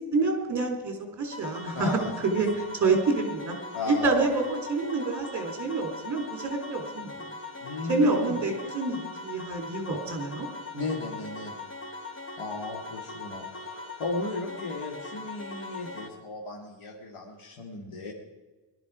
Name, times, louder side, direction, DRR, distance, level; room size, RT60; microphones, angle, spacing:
voice 1, 0.1-3.6 3.9-7.3 7.9-10.5 10.7-10.8, right 3 dB, 35° right, 2 dB, 3.6 m, -27 dB
sound 1, 1.3-16.1, left 3 dB, 25° left, 1.6 m, -40 dB
voice 2, 1.7-2.1 3.7-4.3 7.6-8.4 10.7-11.5 12.4-18.1, left 3 dB, 90° left, -1 dB, 2.1 m, -35 dB
19.5 x 12.0 x 4.9 m, 1.3 s
wide cardioid pair, 150°, 48 cm